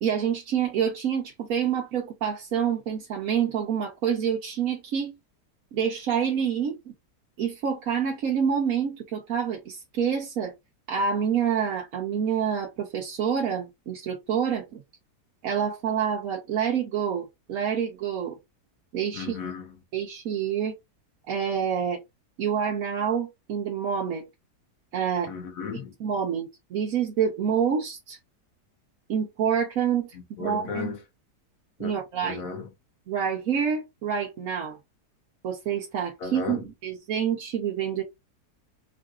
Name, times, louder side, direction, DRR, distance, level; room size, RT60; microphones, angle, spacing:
voice 1, 0.0-5.1 5.7-6.9 7.4-10.5 10.9-14.8 15.4-18.4 18.9-19.4 19.9-20.7 21.3-22.0 22.4-24.3 24.9-25.3 26.0-28.2 29.1-30.9 31.8-32.5 33.1-34.8 35.4-38.0, right 7 dB, 60° right, 1.1 m, -27 dB
voice 2, 19.1-19.7 25.3-25.9 30.4-31.0 31.8-31.9 32.2-32.7 36.2-36.6, left 4 dB, 65° left, 1.1 m, -34 dB
3.7 x 2.6 x 2.4 m
omnidirectional pair, 1.8 m